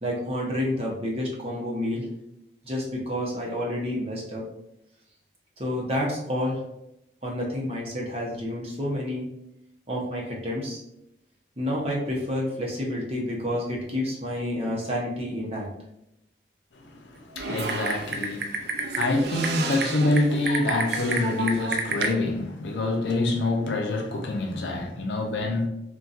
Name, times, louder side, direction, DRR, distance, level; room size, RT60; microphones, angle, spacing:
voice 1, 0.0-2.0 2.6-4.4 5.6-6.6 7.2-9.3 9.9-10.8 11.6-15.7, left 1 dB, 35° right, 0.7 m, -29 dB
voice 2, 17.2-25.7, left 2 dB, 80° left, 0.5 m, -26 dB
Typing, 17.4-22.1, right 3 dB, 70° right, 0.4 m, -30 dB
4.0 x 2.2 x 2.4 m
head